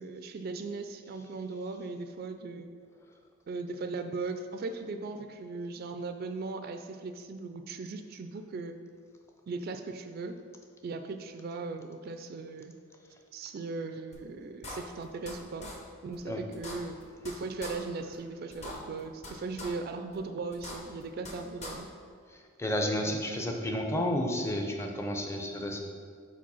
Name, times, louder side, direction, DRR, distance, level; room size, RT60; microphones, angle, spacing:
voice 1, 0.0-2.7 3.5-8.8 9.5-10.4 10.8-12.7 13.3-15.7 16.0-17.0 17.2-21.9 22.9-23.3, right 3 dB, 50° right, 8 dB, 0.3 m, -38 dB
sound 1, 14.1-14.2 14.6-15.3 15.6-15.7 16.1-16.2 16.5-17.3 17.6-17.7 18.1-18.2 18.5-19.3 19.6-19.7 20.1-20.2 20.5-21.3 21.6-21.7, left 2 dB, 35° left, 0.9 m, -41 dB
voice 2, 22.3-25.8, left 1 dB, 15° left, 2 dB, 0.6 m, -31 dB
5.1 x 4.2 x 5.5 m, 2.1 s
head